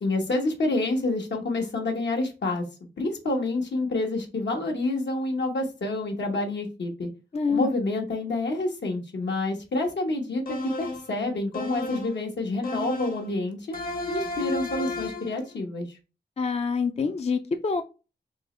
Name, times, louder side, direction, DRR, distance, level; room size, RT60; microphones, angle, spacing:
voice 1, 0.0-2.7 3.0-7.1 7.5-13.7 14.1-16.0, left 2 dB, 75° left, 2 dB, 1.1 m, -28 dB
voice 2, 7.3-7.7 16.4-17.8, left 5 dB, 35° left, 7 dB, 0.4 m, -26 dB
sound 1, 10.5-11.1 11.5-12.2 12.6-13.3 13.7-15.4, left 2 dB, 55° left, 1.0 m, -32 dB
3.8 x 2.9 x 3.1 m, 0.31 s
cardioid pair, 65°, 18 cm